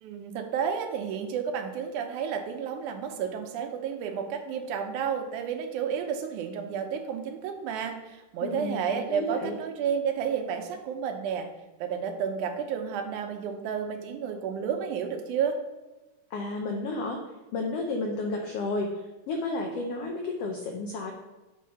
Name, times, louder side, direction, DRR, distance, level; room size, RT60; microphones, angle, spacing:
voice 1, 0.0-11.5 11.8-15.6, right 7 dB, 75° right, 5 dB, 2.2 m, -31 dB
voice 2, 8.4-9.6 16.3-17.2 17.5-18.9 19.3-21.1, left 2 dB, 80° left, 2 dB, 1.3 m, -32 dB
8.4 x 3.7 x 5.6 m, 1.1 s
omnidirectional pair, 3.7 m